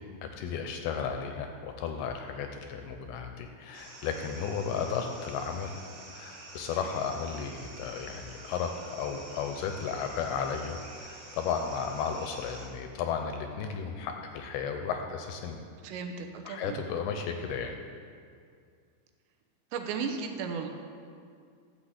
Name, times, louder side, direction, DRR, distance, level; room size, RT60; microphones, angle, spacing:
voice 1, 0.2-5.7 6.1-15.6 16.5-17.8, left 6 dB, 80° left, 5 dB, 2.4 m, -34 dB
sound 1, 3.7-12.7, right 2 dB, 65° right, 1.0 m, -48 dB
voice 2, 15.8-16.8 19.7-20.7, right 5 dB, 90° right, 5 dB, 3.1 m, -35 dB
12.5 x 6.5 x 8.0 m, 2.2 s
omnidirectional pair, 5.0 m